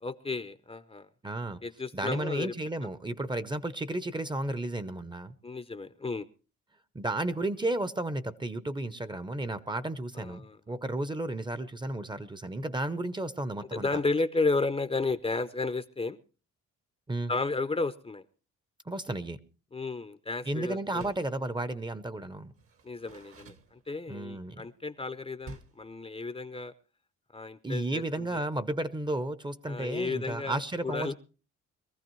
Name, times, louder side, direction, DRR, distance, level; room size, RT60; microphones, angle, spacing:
voice 1, 0.0-1.1 1.6-2.5 5.4-6.3 10.1-10.6 13.7-16.2 17.3-18.2 19.7-21.1 22.8-26.7 27.3-28.4 29.7-31.1, left 3 dB, 20° left, 0.6 m, -33 dB
voice 2, 1.2-1.6 1.9-5.3 6.9-13.9 17.1-17.3 18.9-19.4 20.5-22.5 24.1-24.7 27.6-31.1, right 1 dB, 15° right, 0.7 m, -33 dB
Door, 20.8-21.4 22.5-24.2 25.4-25.9, right 3 dB, 45° right, 1.1 m, -49 dB
22.0 x 14.5 x 3.1 m
cardioid pair, 90°, 30 cm